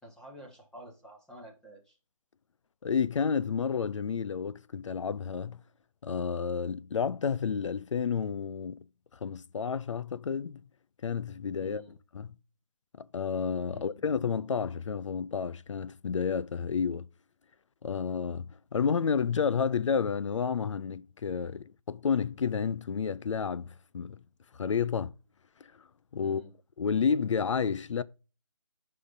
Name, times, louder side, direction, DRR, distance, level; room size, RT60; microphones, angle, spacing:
voice 1, 0.0-2.0 11.6-11.9 13.7-14.1 21.4-21.6 26.2-26.5, equal, 5° left, 1.3 m, -50 dB
voice 2, 2.8-5.6 6.0-8.8 9.1-10.6 11.0-11.8 12.1-12.3 13.0-17.1 17.8-24.2 24.6-25.1 26.1-26.4 26.8-28.0, left 6 dB, 60° left, 0.5 m, -30 dB
11.0 x 5.6 x 2.6 m
figure-of-eight pair, 155°, 18 cm